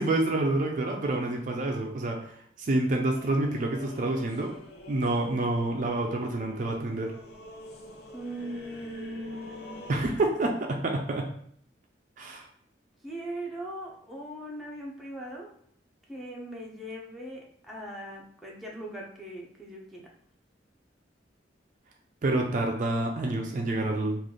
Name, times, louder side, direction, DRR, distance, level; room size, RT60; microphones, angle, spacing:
voice 1, 0.0-4.5 4.9-7.1 9.9-11.3 12.2-12.5 22.2-24.2, right 2 dB, 45° right, 1 dB, 0.4 m, -28 dB
sound 1, 3.0-10.0, left 1 dB, 55° left, 0.5 m, -47 dB
voice 2, 8.1-9.8 13.0-15.5 16.1-20.1, right 1 dB, ahead, -3 dB, 0.6 m, -39 dB
3.2 x 2.4 x 3.7 m, 0.65 s
head